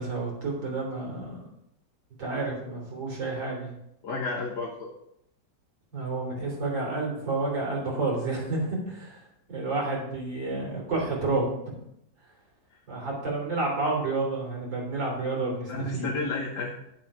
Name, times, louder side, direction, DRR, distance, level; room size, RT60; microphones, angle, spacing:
voice 1, 0.0-1.4 2.2-3.7 5.9-9.2 9.5-11.7 12.9-16.1, right 3 dB, 75° right, -2 dB, 4.1 m, -30 dB
voice 2, 4.0-4.9 15.7-16.7, left 3 dB, 65° left, -3 dB, 1.8 m, -31 dB
9.4 x 7.6 x 4.9 m, 0.79 s
omnidirectional pair, 2.0 m